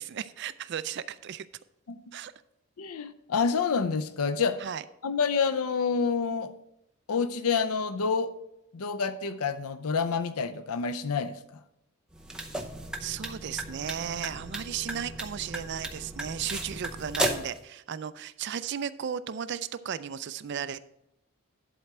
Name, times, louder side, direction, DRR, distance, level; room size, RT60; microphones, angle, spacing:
voice 1, 0.0-1.5 2.1-2.3 4.6-4.8 13.0-20.8, right 8 dB, 50° right, 15 dB, 0.4 m, -35 dB
voice 2, 2.8-4.6 5.0-6.5 7.1-8.3 8.7-11.4, left 5 dB, 80° left, 11 dB, 0.5 m, -28 dB
sound 1, 12.1-17.6, right 1 dB, 5° right, 0.6 m, -35 dB
11.0 x 4.3 x 5.9 m, 0.82 s
head